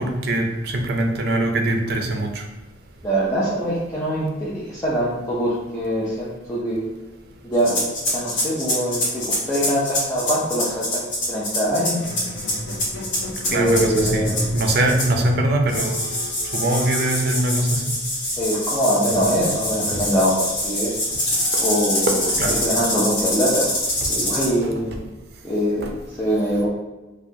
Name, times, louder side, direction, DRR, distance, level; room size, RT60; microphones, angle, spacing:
voice 1, 0.0-2.4 13.5-16.0 16.5-17.9 22.4-22.5 24.4-24.7 25.8-25.9, right 1 dB, 55° right, 3 dB, 0.5 m, -22 dB
voice 2, 3.0-6.8 7.4-7.8 8.1-12.0 13.5-14.4 18.4-20.9 21.6-22.3 22.6-23.7 24.1-25.1 25.4-25.9 26.2-26.7, equal, 15° left, -8 dB, 0.6 m, -23 dB
sound 1, 7.6-15.3 15.7-24.5, left 1 dB, 80° left, 1.3 m, -25 dB
Squeak, 11.8-18.1 19.1-24.2, left 1 dB, 65° left, 0.7 m, -34 dB
4.6 x 2.3 x 2.8 m, 1.1 s
head